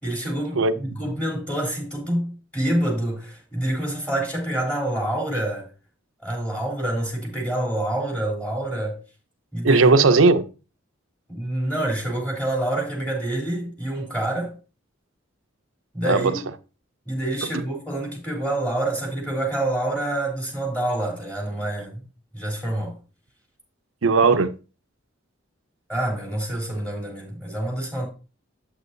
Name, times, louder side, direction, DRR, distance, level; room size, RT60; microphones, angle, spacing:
voice 1, 0.0-5.7 6.2-9.0 9.5-9.9 11.3-14.5 15.9-16.4 17.1-22.0 22.3-23.0 25.9-28.1, right 1 dB, 10° left, 3.7 m, -27 dB
voice 2, 9.6-10.5 16.0-16.4 17.4-17.6 24.0-24.5, right 4 dB, 75° right, 0.7 m, -17 dB
8.4 x 8.1 x 2.7 m
head